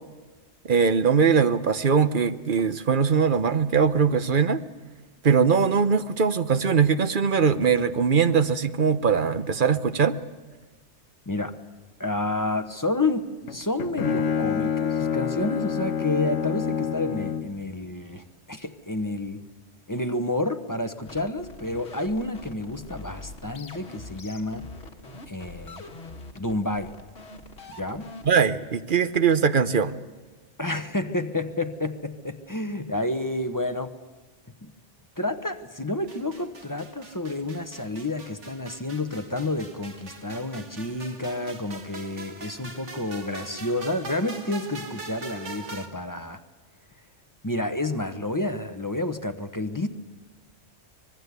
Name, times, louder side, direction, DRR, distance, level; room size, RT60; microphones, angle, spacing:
voice 1, 0.7-4.6 5.2-10.1 28.3-30.0, right 6 dB, 50° right, 11 dB, 1.0 m, -21 dB
voice 2, 12.0-19.4 19.9-24.7 25.3-25.8 26.3-26.9 27.8-28.1 30.6-33.9 34.6-34.7 35.2-46.4 47.4-49.9, left 2 dB, 20° left, 8 dB, 1.0 m, -29 dB
Bowed string instrument, 13.5-17.6, left 7 dB, 85° left, 1.3 m, -27 dB
sound 1, 21.1-28.3, left 2 dB, 65° left, 2.0 m, -43 dB
sound 2, 36.1-45.9, right 3 dB, 90° right, 2.2 m, -42 dB
24.5 x 20.5 x 8.2 m, 1.3 s
omnidirectional pair, 1.2 m